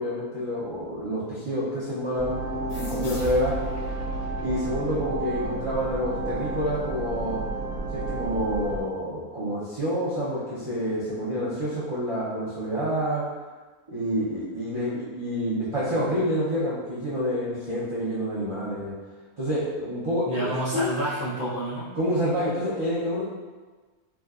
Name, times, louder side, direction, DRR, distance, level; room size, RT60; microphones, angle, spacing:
voice 1, 0.0-2.4 2.7-3.5 4.4-7.4 7.9-13.2 13.9-18.9 19.4-20.8 21.9-23.2, equal, 50° right, -11 dB, 0.3 m, -28 dB
sound 1, 2.1-8.8, right 2 dB, 85° right, 1.1 m, -31 dB
sound 2, 2.7-5.9, right 1 dB, 85° left, 1.1 m, -40 dB
voice 2, 20.2-21.9, right 1 dB, 55° left, -12 dB, 0.4 m, -29 dB
3.4 x 2.1 x 2.3 m, 1.3 s
omnidirectional pair, 1.5 m